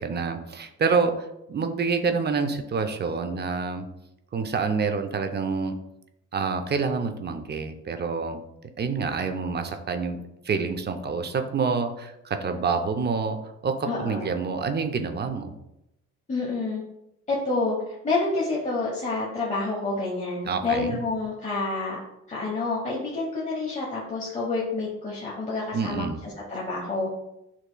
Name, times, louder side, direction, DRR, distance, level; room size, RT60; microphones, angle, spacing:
voice 1, 0.0-3.8 4.3-5.7 6.3-8.4 8.8-10.2 10.4-13.4 13.6-15.5 20.4-21.0 25.7-26.2, right 5 dB, 35° right, 8 dB, 0.5 m, -27 dB
voice 2, 13.9-14.3 16.3-16.8 17.3-17.8 18.0-22.0 22.3-27.1, left 3 dB, 25° left, -5 dB, 1.1 m, -28 dB
6.9 x 3.0 x 2.2 m, 0.85 s
cardioid pair, 90°, 30 cm